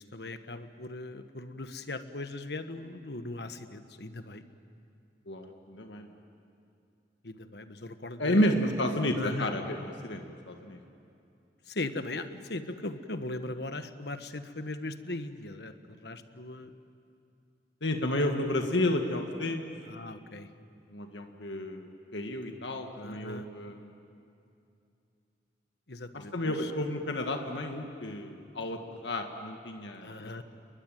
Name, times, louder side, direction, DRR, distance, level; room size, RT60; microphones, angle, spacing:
voice 1, 0.0-4.4 7.2-8.4 9.2-9.5 11.7-16.7 19.9-20.5 23.0-23.5 25.9-26.7 30.0-30.4, left 2 dB, 70° left, 9 dB, 1.3 m, -39 dB
voice 2, 5.3-6.1 8.2-10.8 17.8-19.6 20.9-23.9 26.1-30.4, left 1 dB, 90° left, 4 dB, 1.8 m, -31 dB
29.5 x 22.0 x 9.2 m, 2.6 s
head